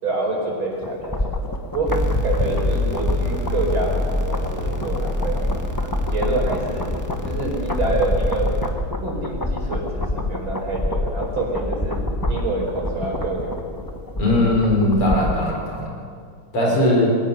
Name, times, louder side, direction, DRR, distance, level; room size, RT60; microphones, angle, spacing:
voice 1, 0.0-1.4 1.7-1.9 2.2-5.5 6.1-6.9 7.2-8.5 9.0-12.0 12.3-13.8 14.4-14.6 16.6-17.0, right 2 dB, 70° right, -1 dB, 5.4 m, -26 dB
sound 1, 0.8-15.5 15.8-15.9, left 1 dB, 15° left, 1.0 m, -27 dB
sound 2, 1.9-8.7, left 1 dB, 10° right, 1.8 m, -27 dB
voice 2, 14.2-16.0 16.5-17.1, left 1 dB, 85° left, -2 dB, 5.4 m, -19 dB
21.5 x 18.5 x 6.8 m, 2.2 s
omnidirectional pair, 2.3 m